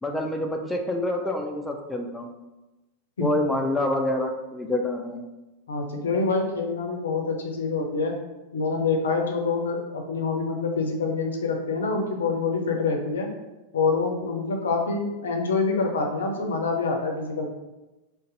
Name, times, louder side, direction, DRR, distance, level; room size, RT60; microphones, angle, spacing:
voice 1, 0.0-2.3 3.2-5.2, left 1 dB, 5° left, 2 dB, 0.3 m, -27 dB
voice 2, 5.7-8.1 8.5-13.3 13.7-17.4, left 4 dB, 65° left, 3 dB, 0.5 m, -26 dB
2.6 x 2.1 x 3.9 m, 1.1 s
figure-of-eight pair, 90°, 0 cm